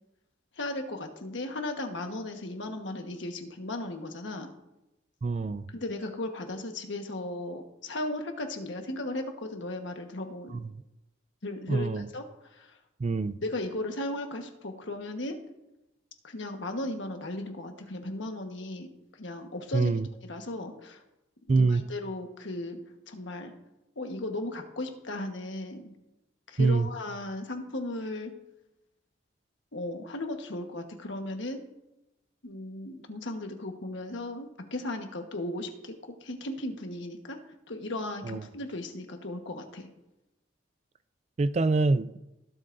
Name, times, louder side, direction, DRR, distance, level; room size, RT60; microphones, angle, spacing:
voice 1, 0.6-4.5 5.7-10.6 11.4-12.8 13.4-15.4 16.2-18.9 19.2-19.9 20.3-21.0 21.5-22.8 23.1-23.5 24.0-25.9 26.5-28.3 29.7-31.6 32.4-37.4 37.7-39.9, left 2 dB, 75° left, 1.3 m, -36 dB
voice 2, 5.2-5.7 10.5-10.7 11.7-12.1 13.0-13.4 19.7-20.1 21.5-21.8 26.6-26.9 38.2-38.4 41.4-42.1, right 3 dB, 35° right, 0.3 m, -25 dB
19.5 x 7.8 x 2.6 m
head